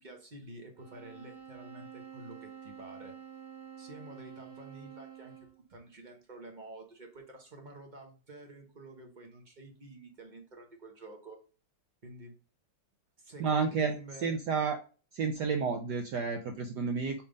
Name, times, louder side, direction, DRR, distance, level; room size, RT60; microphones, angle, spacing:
voice 1, 0.0-3.1 3.8-5.3 5.7-11.4 12.0-12.3 13.2-14.4, right 2 dB, 35° right, 2 dB, 0.7 m, -49 dB
sound 1, 0.8-5.6, right 9 dB, 55° right, 2.1 m, -49 dB
voice 2, 13.4-14.0 14.2-14.8 15.1-17.2, right 5 dB, 70° right, 6 dB, 1.0 m, -31 dB
5.2 x 3.5 x 5.0 m, 0.36 s
omnidirectional pair, 2.4 m